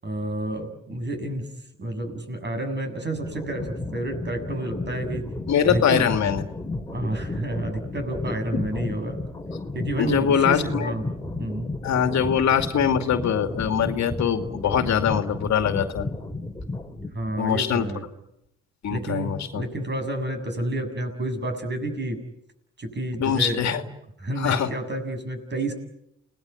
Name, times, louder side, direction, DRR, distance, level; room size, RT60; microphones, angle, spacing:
voice 1, 0.0-1.5 1.8-5.3 5.7-6.0 6.9-9.2 9.7-11.0 11.4-11.7 17.1-18.0 18.9-22.2 22.8-23.8 24.2-25.7, right 1 dB, 35° right, 6 dB, 7.1 m, -30 dB
sound 1, 3.2-17.4, left 2 dB, 10° left, 2.8 m, -33 dB
voice 2, 5.5-6.4 10.0-10.9 11.8-16.1 17.4-17.9 18.8-19.6 23.2-23.8 24.4-24.7, left 8 dB, 65° left, 7 dB, 2.5 m, -23 dB
30.0 x 19.0 x 9.3 m, 0.80 s
cardioid pair, 90°, 30 cm